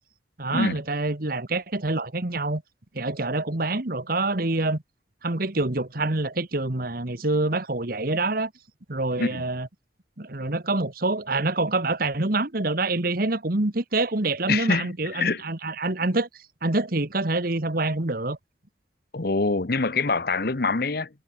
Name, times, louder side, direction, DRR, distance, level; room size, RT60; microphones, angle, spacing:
voice 1, 0.4-2.6 2.9-4.8 5.2-8.5 8.9-9.7 10.2-16.3 16.6-18.4, right 2 dB, 50° right, 1.6 m, -26 dB
voice 2, 14.5-15.4 19.1-21.1, left 3 dB, 55° left, 1.0 m, -25 dB
head